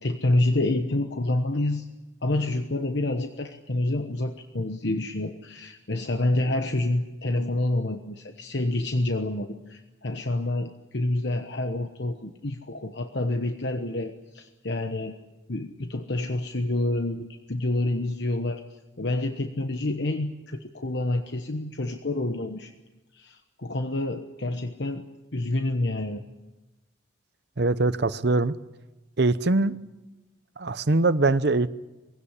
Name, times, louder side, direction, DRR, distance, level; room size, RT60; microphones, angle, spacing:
voice 1, 0.0-1.9 2.2-15.1 15.5-18.6 19.0-22.7 23.1-25.0 25.3-26.2, left 2 dB, 60° left, 1.1 m, -28 dB
voice 2, 27.6-28.5 29.2-29.8 30.6-31.7, right 2 dB, 55° right, 0.8 m, -22 dB
22.5 x 17.0 x 9.9 m
head